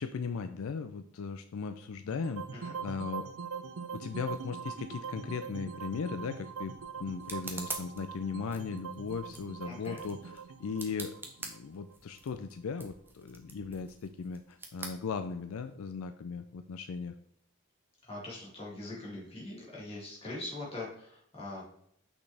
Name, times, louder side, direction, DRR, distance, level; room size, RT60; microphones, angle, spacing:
voice 1, 0.0-3.3 3.9-11.1 11.4-17.1, left 5 dB, 70° left, 9 dB, 0.4 m, -38 dB
sound 1, 2.1-12.3, right 6 dB, 70° right, 0.5 m, -42 dB
sound 2, 5.9-15.8, right 3 dB, 10° right, 0.6 m, -47 dB
voice 2, 9.6-10.0 18.0-21.6, left 2 dB, 25° left, -5 dB, 2.5 m, -42 dB
6.2 x 5.9 x 3.4 m, 0.71 s
head